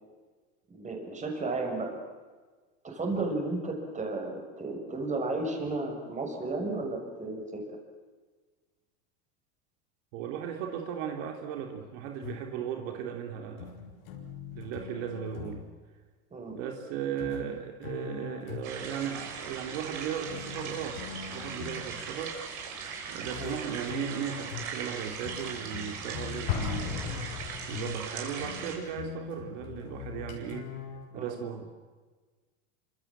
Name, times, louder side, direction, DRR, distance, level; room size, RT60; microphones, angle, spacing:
voice 1, 0.7-2.0 2.8-7.6 16.3-16.6 23.4-23.6 31.1-31.4, right 2 dB, 15° right, 2 dB, 6.7 m, -33 dB
voice 2, 10.1-13.8 14.5-15.7 16.5-22.4 23.1-30.7 31.1-31.6, right 8 dB, 60° right, 3 dB, 3.5 m, -37 dB
sound 1, 12.2-12.7 13.6-15.7 17.2-19.0 20.3-21.9 23.2-31.1, left 8 dB, 75° left, 7.3 m, -42 dB
sound 2, 18.6-28.8, right 6 dB, 45° right, 7.2 m, -39 dB
Explosion, 26.5-28.1, left 8 dB, 60° left, 6.3 m, -34 dB
28.0 x 26.0 x 7.6 m, 1.4 s
supercardioid pair, 130°, 42 cm